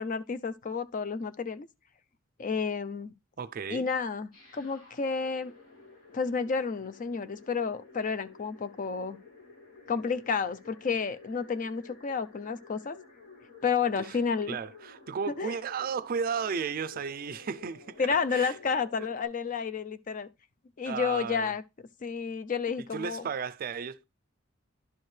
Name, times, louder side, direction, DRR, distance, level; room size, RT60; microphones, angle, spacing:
voice 1, 0.0-1.7 2.4-3.1 3.7-5.5 6.1-9.2 9.9-13.0 13.6-14.6 15.4-15.6 18.0-20.3 20.8-21.6 22.0-23.3, left 5 dB, 40° left, 0.4 m, -31 dB
voice 2, 3.4-3.9 14.0-14.2 14.5-18.0 18.3-18.6 19.0-19.1 20.9-21.5 22.9-24.0, right 6 dB, 45° right, 0.4 m, -34 dB
sound 1, 4.3-19.2, left 4 dB, 80° left, 3.1 m, -53 dB
11.0 x 4.5 x 3.2 m
head